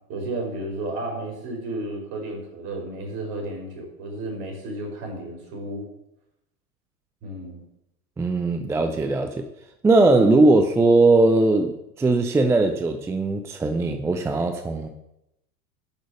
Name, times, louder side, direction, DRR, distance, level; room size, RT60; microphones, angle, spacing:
voice 1, 0.1-5.8 7.2-7.6, right 2 dB, 45° right, 0 dB, 5.3 m, -32 dB
voice 2, 8.2-9.4 9.8-14.9, right 2 dB, 5° right, 6 dB, 0.5 m, -19 dB
10.5 x 6.3 x 8.3 m, 0.84 s
figure-of-eight pair, 85°, 47 cm